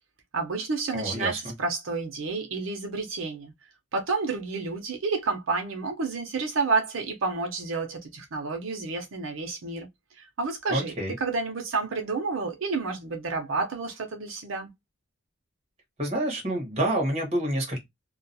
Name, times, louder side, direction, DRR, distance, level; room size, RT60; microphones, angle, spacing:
voice 1, 0.3-3.5 3.9-9.9 10.2-14.7, right 4 dB, 80° right, 0.7 m, -30 dB
voice 2, 0.9-1.5 10.7-11.1 16.0-17.8, right 1 dB, 30° right, 1.1 m, -28 dB
2.3 x 2.3 x 2.6 m
head